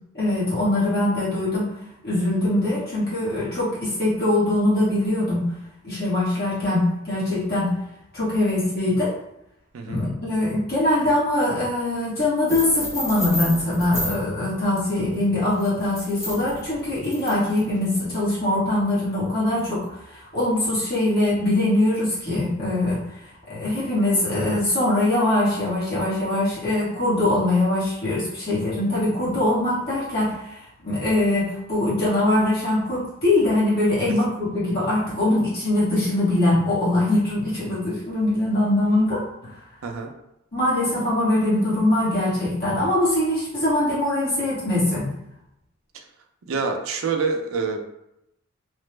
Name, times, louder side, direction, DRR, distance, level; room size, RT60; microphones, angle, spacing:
voice 1, 0.1-1.7 2.0-5.5 5.8-7.7 8.1-9.2 9.9-23.2 23.5-39.5 40.5-45.1, left 1 dB, 50° left, -9 dB, 1.1 m, -22 dB
sound 1, 12.5-14.2 15.5-18.2, left 1 dB, 15° left, 0.7 m, -31 dB
voice 2, 39.8-40.1 46.5-47.8, right 4 dB, 80° right, 4 dB, 0.5 m, -26 dB
3.1 x 2.0 x 3.2 m, 0.85 s
head